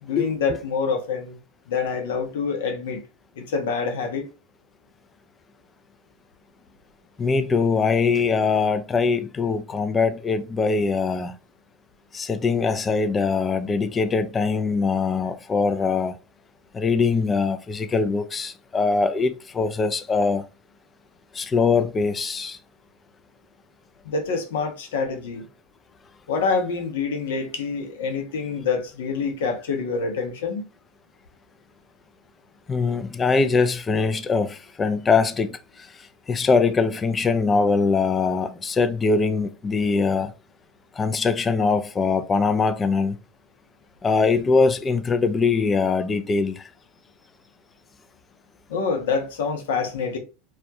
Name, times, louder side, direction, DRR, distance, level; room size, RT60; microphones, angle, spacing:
voice 1, 0.0-1.4 1.7-3.0 3.4-4.3 24.0-25.4 26.3-30.7 48.7-50.2, left 5 dB, 70° left, 0.6 m, -26 dB
voice 2, 7.2-11.3 12.1-16.2 16.7-20.4 21.3-22.6 32.7-40.3 40.9-43.2 44.0-46.7, left 4 dB, 25° left, 0.3 m, -22 dB
2.3 x 2.1 x 2.7 m
hypercardioid pair, 85°, 0 cm